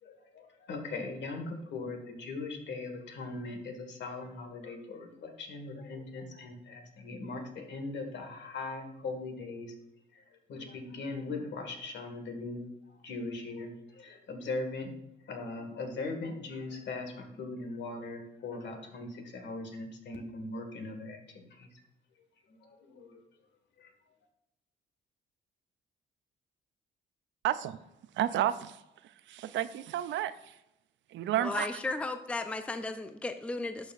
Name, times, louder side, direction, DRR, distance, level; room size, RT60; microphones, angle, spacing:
voice 1, 0.0-9.7 10.1-12.6 13.0-14.9 15.2-21.7 22.5-23.2 23.8-23.9, left 3 dB, 65° left, 4 dB, 1.7 m, -40 dB
voice 2, 27.4-27.8 28.1-28.8 29.3-30.6 31.1-31.7, right 12 dB, 70° right, 14 dB, 0.4 m, -31 dB
voice 3, 31.4-33.9, left 2 dB, 5° left, 8 dB, 0.4 m, -35 dB
11.5 x 4.8 x 2.5 m, 0.89 s
cardioid pair, 90°, 20 cm